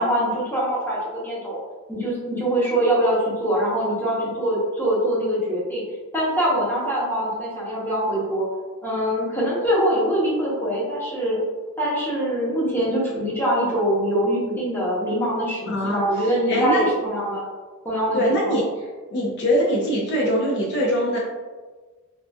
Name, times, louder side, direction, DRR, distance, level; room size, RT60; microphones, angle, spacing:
voice 1, 0.0-1.6 1.9-5.8 6.1-8.5 8.8-11.4 11.8-17.5 17.8-18.6, equal, 10° left, -7 dB, 0.8 m, -23 dB
voice 2, 15.7-16.0 16.5-16.9 18.1-18.6 19.1-21.2, equal, 50° left, -3 dB, 0.5 m, -22 dB
3.7 x 2.4 x 2.3 m, 1.3 s
head